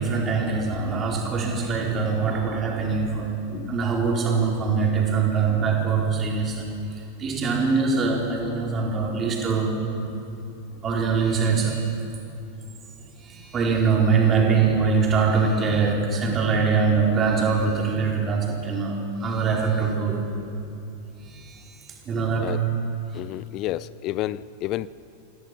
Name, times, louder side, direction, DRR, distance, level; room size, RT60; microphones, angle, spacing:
voice 1, 0.0-3.3 3.7-9.9 10.8-11.9 13.2-20.3 21.2-21.8 22.0-22.7, right 5 dB, 25° right, -1 dB, 4.3 m, -23 dB
voice 2, 23.1-24.9, left 15 dB, 40° left, 19 dB, 0.4 m, -30 dB
27.0 x 16.5 x 6.0 m, 2.7 s
figure-of-eight pair, 90°, 0 cm